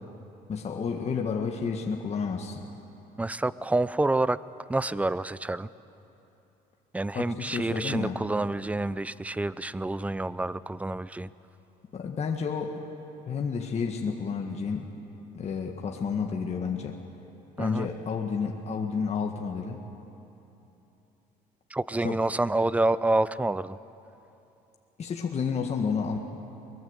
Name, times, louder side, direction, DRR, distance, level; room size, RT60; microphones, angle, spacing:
voice 1, 0.5-2.6 7.1-8.2 11.9-12.9 13.3-14.9 15.3-17.0 17.6-19.8 22.0-22.2 25.0-26.2, left 5 dB, 40° left, 2 dB, 1.7 m, -30 dB
voice 2, 3.2-4.4 4.7-5.7 6.9-11.3 17.6-17.9 21.7-23.8, right 2 dB, 10° right, 17 dB, 0.5 m, -28 dB
23.5 x 21.0 x 8.2 m, 3.0 s
cardioid pair, 110°, 17 cm